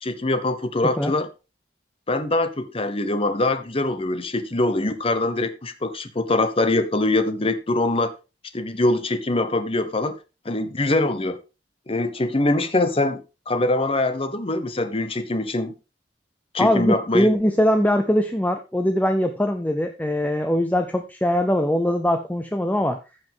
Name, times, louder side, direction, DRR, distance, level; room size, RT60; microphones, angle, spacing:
voice 1, 0.0-1.3 2.1-8.1 8.5-10.1 10.4-11.4 11.9-15.7 16.5-17.3, left 2 dB, 30° left, 1.1 m, -23 dB
voice 2, 16.6-23.0, equal, 10° left, 0.6 m, -21 dB
15.0 x 5.6 x 3.6 m
head